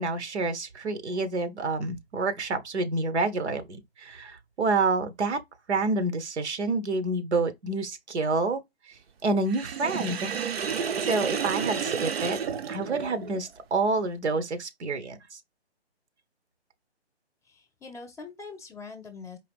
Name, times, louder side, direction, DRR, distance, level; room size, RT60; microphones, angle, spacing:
voice 1, 0.0-5.4 5.7-8.6 9.2-10.4 11.0-12.4 12.7-15.4, right 3 dB, 80° right, 1.2 m, -28 dB
Sink (filling or washing), 9.5-13.4, right 6 dB, 65° right, 0.8 m, -31 dB
voice 2, 17.5-19.4, left 4 dB, 5° left, 0.5 m, -43 dB
4.7 x 2.8 x 3.4 m
hypercardioid pair, 155°, 33 cm